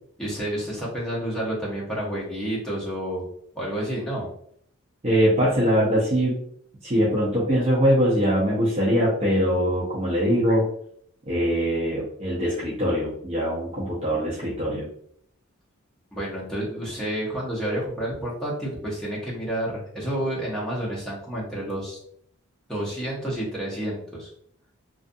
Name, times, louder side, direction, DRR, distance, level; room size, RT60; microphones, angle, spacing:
voice 1, 0.2-3.3 3.5-4.3 16.1-22.0 22.7-24.3, right 1 dB, 5° left, -6 dB, 0.8 m, -30 dB
voice 2, 5.0-6.4 6.8-10.7 11.3-14.9, equal, 30° right, -8 dB, 0.6 m, -22 dB
2.4 x 2.4 x 2.5 m, 0.66 s
head